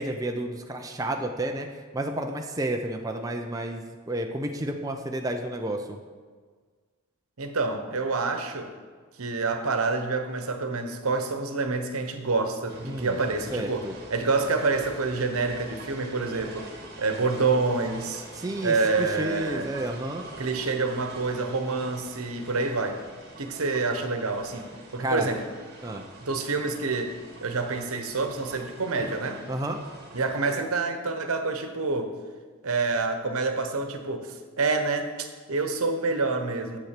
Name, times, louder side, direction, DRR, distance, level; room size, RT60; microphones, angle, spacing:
voice 1, 0.0-1.7 1.9-6.0 12.8-13.2 13.5-13.9 18.4-20.3 25.0-25.3 25.8-26.0 29.0-29.1 29.5-29.8, right 1 dB, 15° right, 3 dB, 0.6 m, -31 dB
voice 2, 7.4-8.7 9.2-18.2 18.6-19.7 20.4-23.0 23.4-24.7 24.9-25.4 26.2-29.4 30.1-32.1 32.6-36.8, right 3 dB, 80° right, 7 dB, 1.0 m, -27 dB
sound 1, 12.7-30.5, right 2 dB, 50° right, 1.7 m, -45 dB
8.0 x 7.4 x 6.7 m, 1.5 s
head